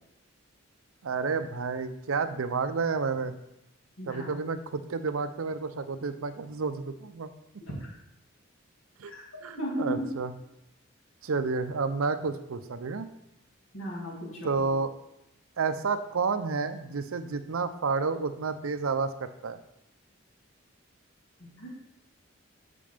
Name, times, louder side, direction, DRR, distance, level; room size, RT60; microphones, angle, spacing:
voice 1, 1.0-3.3 4.1-7.3 9.0-9.1 9.4-10.3 11.2-13.1 14.4-14.9 15.6-19.6, right 4 dB, 90° right, 11 dB, 0.6 m, -30 dB
voice 2, 4.0-4.3 7.6-7.7 9.1-9.2 9.6-10.1 13.7-14.6 21.4-21.7, equal, 80° left, -4 dB, 2.2 m, -35 dB
6.7 x 5.3 x 5.1 m, 0.82 s
head